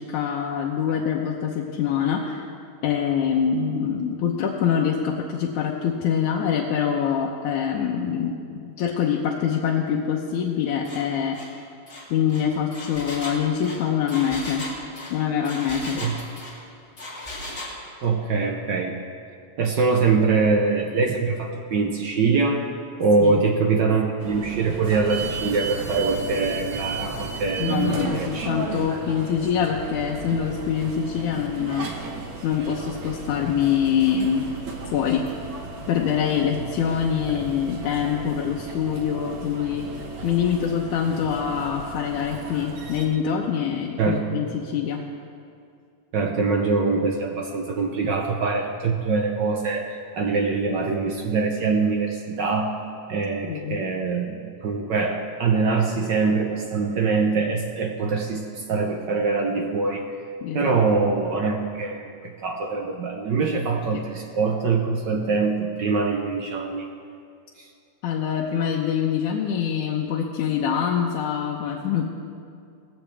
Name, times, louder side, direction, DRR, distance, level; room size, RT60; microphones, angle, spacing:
voice 1, 0.0-2.5 2.8-11.4 12.1-14.7 15.1-16.0 23.2-23.4 27.6-31.9 32.4-34.5 34.9-35.3 35.9-39.9 40.2-45.0 53.5-53.8 60.4-60.8 68.0-72.1, left 8 dB, 90° left, -1 dB, 2.4 m, -25 dB
Engine, 10.8-11.0 11.3-11.5 11.9-16.6 17.0-17.8, left 1 dB, 20° left, 2.8 m, -36 dB
voice 2, 18.0-19.0 19.6-22.6 23.0-28.5 44.0-44.4 46.1-52.7 53.1-60.1 60.5-66.9, right 4 dB, 75° right, 2 dB, 1.0 m, -23 dB
sound 1, 24.2-43.1, right 4 dB, 50° right, 1.7 m, -34 dB
18.5 x 16.0 x 3.4 m, 2.3 s
omnidirectional pair, 3.4 m